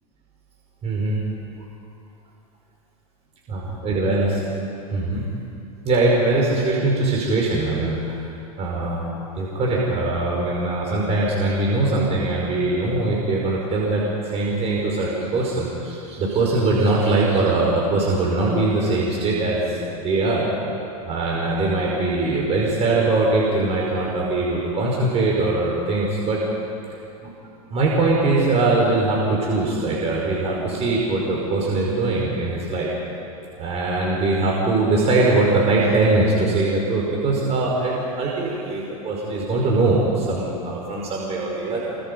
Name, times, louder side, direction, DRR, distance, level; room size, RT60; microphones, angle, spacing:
voice 1, 0.8-1.2 3.5-4.4 4.9-5.2 5.9-9.1 9.4-20.5 21.0-26.4 27.2-27.3 27.7-32.9 33.6-42.0, right 2 dB, 35° right, -3 dB, 5.2 m, -21 dB
28.5 x 24.0 x 5.4 m, 2.6 s
hypercardioid pair, 105°, 19 cm